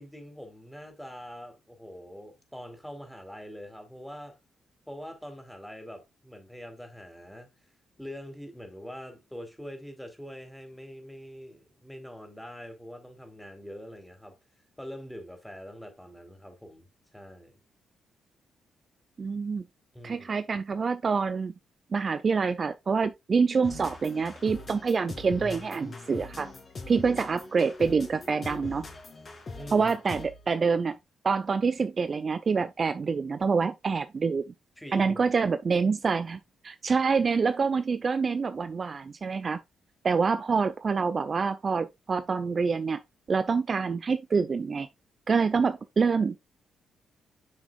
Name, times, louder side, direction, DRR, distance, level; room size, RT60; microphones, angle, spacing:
voice 1, 0.0-4.4 4.9-7.5 8.0-14.4 14.8-17.6 19.9-20.3 29.5-30.0 34.8-35.3, equal, 5° left, 3.4 m, -44 dB
voice 2, 19.2-19.6 20.0-21.5 21.9-26.5 26.9-28.8 29.7-31.0 31.2-34.5 34.9-39.6 40.0-43.0 43.3-44.9 45.3-46.4, right 5 dB, 45° right, 0.5 m, -26 dB
sound 1, 23.6-30.5, left 3 dB, 45° left, 2.8 m, -42 dB
8.7 x 6.0 x 2.5 m
hypercardioid pair, 40°, 0 cm